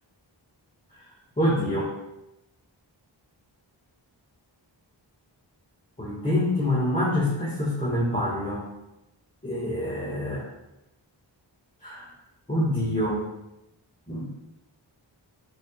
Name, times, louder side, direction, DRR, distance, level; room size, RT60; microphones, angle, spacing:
voice 1, 1.4-2.0 6.0-8.6 9.4-10.4 11.8-12.0 12.5-13.2 14.1-14.3, left 1 dB, 15° left, -6 dB, 1.9 m, -26 dB
8.1 x 6.9 x 2.4 m, 0.91 s
wide cardioid pair, 75°, 45 cm